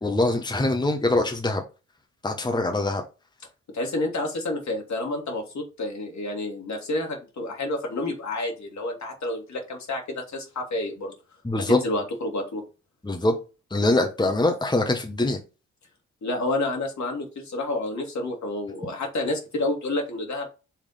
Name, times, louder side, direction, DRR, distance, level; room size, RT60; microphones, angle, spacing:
voice 1, 0.0-1.6 2.2-3.0 11.4-11.8 13.0-13.3 13.7-15.4, left 2 dB, 10° left, 1.1 m, -23 dB
voice 2, 3.7-11.1 11.7-12.6 16.2-20.5, left 2 dB, 50° left, 2.3 m, -29 dB
5.7 x 3.4 x 5.0 m
hypercardioid pair, 45°, 35 cm